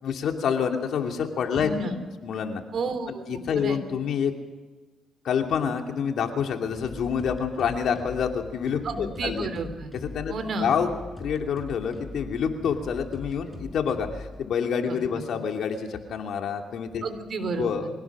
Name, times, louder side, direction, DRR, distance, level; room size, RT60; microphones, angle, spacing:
voice 1, 0.0-1.9 2.2-2.6 3.1-4.3 5.2-9.5 10.0-10.3 10.6-10.9 11.2-17.0 17.6-17.9, left 7 dB, 70° left, 4 dB, 2.8 m, -27 dB
voice 2, 1.5-1.9 2.7-3.8 8.8-9.9 10.3-10.7 14.9-15.2 17.0-17.7, right 3 dB, 55° right, 9 dB, 3.5 m, -32 dB
sound 1, 6.7-14.4, left 2 dB, 10° left, 6.1 m, -41 dB
25.0 x 17.5 x 6.3 m, 1.2 s
cardioid pair, 90°, 0 cm